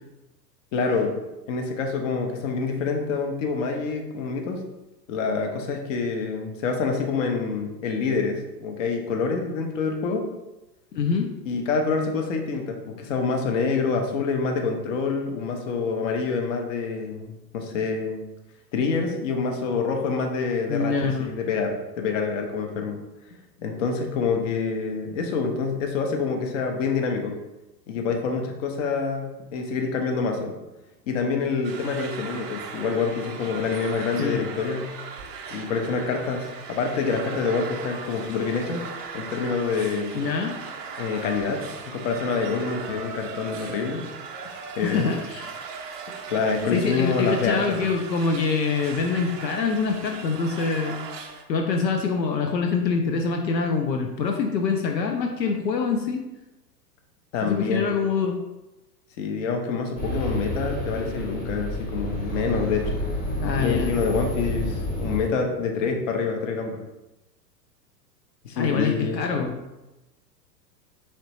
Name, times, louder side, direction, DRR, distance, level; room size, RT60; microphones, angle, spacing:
voice 1, 0.7-1.1 1.5-4.6 5.1-10.2 11.4-18.2 18.7-23.0 23.6-27.4 27.9-30.5 31.1-34.9 35.5-38.8 39.1-40.2 41.0-44.0 44.8-45.2 46.3-47.8 57.3-57.9 59.2-63.0 63.6-66.8 68.4-69.2, left 4 dB, 50° left, 3 dB, 0.8 m, -26 dB
voice 2, 10.9-11.3 20.7-21.3 34.2-34.5 40.1-40.6 44.8-45.5 46.7-51.1 51.5-56.2 57.4-58.4 63.4-64.0 68.6-69.5, left 5 dB, 80° left, 4 dB, 0.6 m, -25 dB
sound 1, 31.6-51.4, right 5 dB, 30° right, 0.4 m, -38 dB
sound 2, 60.0-65.3, equal, 15° left, 0.8 m, -29 dB
4.3 x 3.2 x 3.0 m, 1.0 s
figure-of-eight pair, 100°, 50 cm